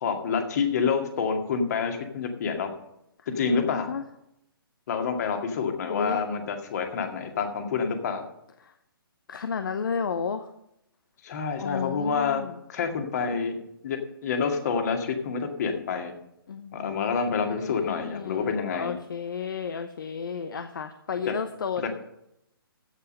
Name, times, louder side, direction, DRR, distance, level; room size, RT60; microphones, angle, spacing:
voice 1, 0.0-2.7 3.3-4.0 4.9-8.2 11.2-12.4 12.7-13.6 13.8-16.1 16.7-19.0, left 5 dB, 45° left, 5 dB, 2.1 m, -28 dB
voice 2, 3.5-4.0 5.9-6.2 8.6-8.7 9.3-10.5 11.6-12.6 16.5-21.8, left 6 dB, 60° left, 9 dB, 0.9 m, -33 dB
15.5 x 5.7 x 6.6 m, 0.79 s
figure-of-eight pair, 130°, 12 cm